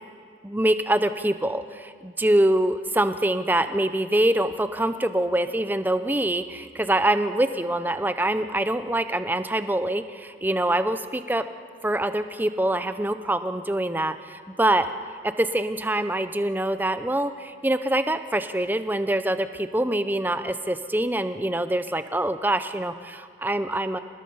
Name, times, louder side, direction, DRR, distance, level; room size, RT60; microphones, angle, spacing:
voice 1, 0.4-11.4 11.8-14.9 15.2-24.0, right 1 dB, 10° right, 10 dB, 0.6 m, -24 dB
27.5 x 19.0 x 5.5 m, 2.1 s
head